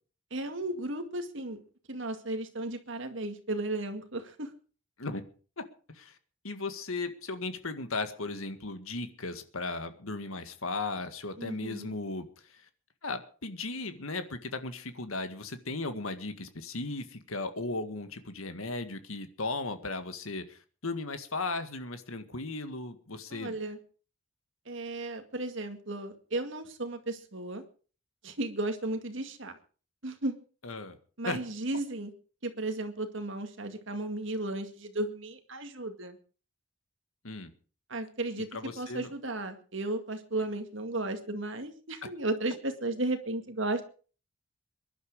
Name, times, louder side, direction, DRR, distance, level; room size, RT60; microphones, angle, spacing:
voice 1, 0.3-1.6 1.9-4.5 11.4-12.0 23.3-23.8 24.7-27.6 28.2-29.5 30.0-30.4 31.2-32.1 32.4-36.2 37.9-38.5 38.8-43.8, right 2 dB, 60° right, 6 dB, 2.1 m, -34 dB
voice 2, 5.6-6.2 6.4-12.7 13.0-23.6 30.6-31.0 31.2-31.4 37.2-37.5 38.5-39.1, left 3 dB, 80° left, 9 dB, 1.9 m, -36 dB
22.5 x 11.5 x 4.9 m, 0.40 s
head